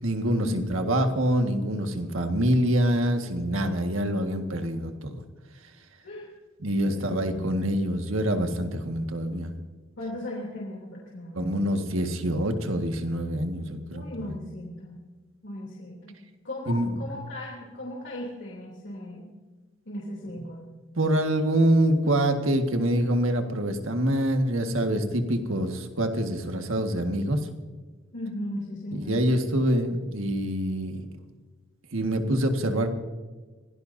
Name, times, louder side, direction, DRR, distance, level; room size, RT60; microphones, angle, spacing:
voice 1, 0.0-5.2 6.6-9.5 11.3-14.4 16.7-16.9 21.0-27.5 28.9-31.0 31.9-32.9, right 1 dB, 90° right, 5 dB, 1.8 m, -25 dB
voice 2, 6.8-7.6 10.0-11.5 13.9-15.0 15.4-16.2 16.4-19.3 19.8-20.7 28.1-29.2, left 1 dB, 65° left, -4 dB, 3.1 m, -37 dB
25.5 x 17.5 x 2.7 m, 1.3 s
head